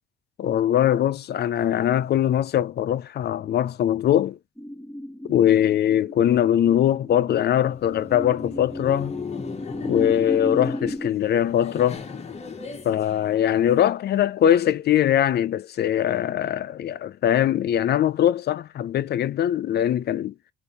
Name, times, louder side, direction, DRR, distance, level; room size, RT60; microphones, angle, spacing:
voice 1, 0.4-4.4 5.3-9.2 9.8-12.0 12.8-20.3, left 10 dB, 55° left, 0.5 m, -21 dB
sound 1, 4.6-11.1, left 1 dB, ahead, 1.4 m, -34 dB
Laughter, 7.6-13.9, left 5 dB, 35° left, 1.0 m, -38 dB
3.4 x 2.6 x 4.2 m
cardioid pair, 90°, 20 cm